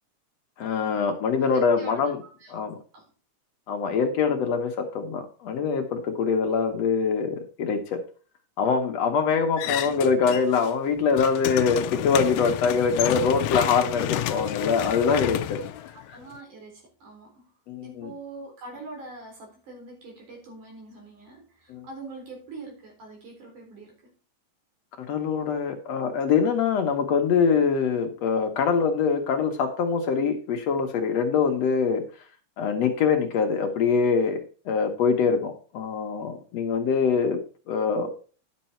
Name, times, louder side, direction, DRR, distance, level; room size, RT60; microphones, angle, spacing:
voice 1, 0.6-2.2 2.5-2.7 3.7-8.0 8.6-15.6 17.7-18.1 21.7-21.9 25.0-32.0 32.6-37.4 37.7-38.1, left 5 dB, 65° left, 5 dB, 2.0 m, -24 dB
voice 2, 1.4-2.5 2.9-3.1 13.3-13.6 15.9-17.5 17.8-24.0, right 3 dB, 75° right, 0 dB, 5.5 m, -44 dB
sound 1, 9.6-10.7 11.0-16.4, left 13 dB, 80° left, 1.7 m, -30 dB
10.5 x 6.8 x 4.3 m, 0.37 s
omnidirectional pair, 3.6 m